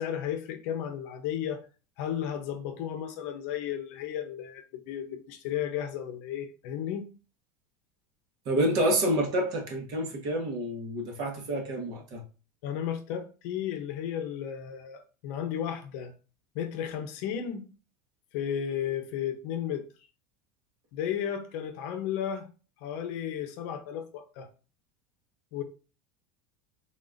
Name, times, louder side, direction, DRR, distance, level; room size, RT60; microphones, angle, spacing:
voice 1, 0.0-1.6 2.0-7.0 12.6-16.1 16.5-17.6 18.3-19.8 20.9-22.5 22.8-24.5 25.5-25.6, left 9 dB, 55° left, 0.8 m, -34 dB
voice 2, 8.5-12.2, right 1 dB, 40° right, 1.1 m, -28 dB
3.9 x 3.6 x 2.5 m
cardioid pair, 175°, 10 cm